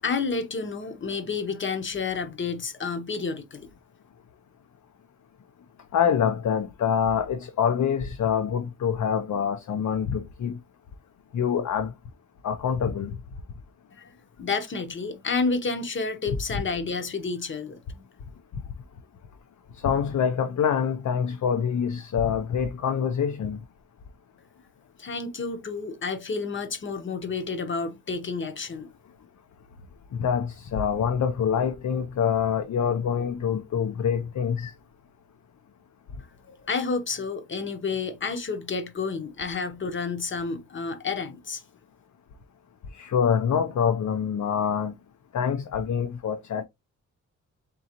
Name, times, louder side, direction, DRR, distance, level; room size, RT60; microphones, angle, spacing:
voice 1, 0.0-3.7 13.9-18.0 25.0-28.9 36.4-41.6, left 4 dB, 40° left, 0.8 m, -30 dB
voice 2, 5.9-10.6 11.3-11.9 12.4-13.2 19.7-23.6 30.1-34.7 42.9-45.0 45.3-46.6, left 7 dB, 70° left, 0.6 m, -25 dB
3.9 x 3.8 x 2.8 m
wide cardioid pair, 175°, 31 cm